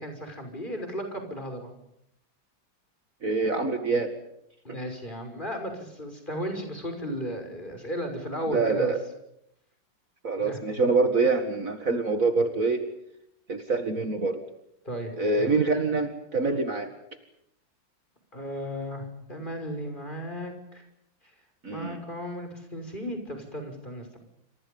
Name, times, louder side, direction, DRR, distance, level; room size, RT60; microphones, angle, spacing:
voice 1, 0.0-1.7 4.6-8.9 10.4-10.6 14.8-15.1 15.4-15.5 18.3-20.8 21.7-24.2, equal, 25° left, 5 dB, 6.2 m, -35 dB
voice 2, 3.2-4.2 4.7-4.8 8.5-9.0 10.2-12.8 13.5-14.4 15.2-16.9 21.6-22.0, right 3 dB, 45° right, 7 dB, 2.3 m, -25 dB
28.0 x 27.5 x 5.4 m, 0.77 s
omnidirectional pair, 2.1 m